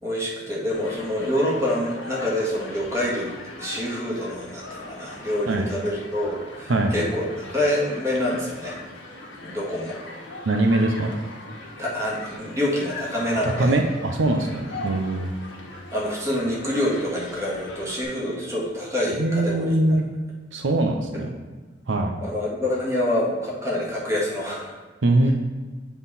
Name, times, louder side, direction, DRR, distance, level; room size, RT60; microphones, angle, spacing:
voice 1, 0.0-8.7 9.4-10.0 11.8-13.8 14.7-14.9 15.9-19.8 22.2-24.8, left 1 dB, 15° right, -5 dB, 1.7 m, -26 dB
Human group actions, 0.7-18.0, left 2 dB, 80° left, 1.2 m, -40 dB
voice 2, 10.5-11.1 13.4-15.3 19.2-20.0 20.5-21.3 21.9-22.1 25.0-25.3, right 2 dB, 80° right, 4 dB, 0.6 m, -22 dB
8.0 x 3.7 x 4.1 m, 1.3 s
head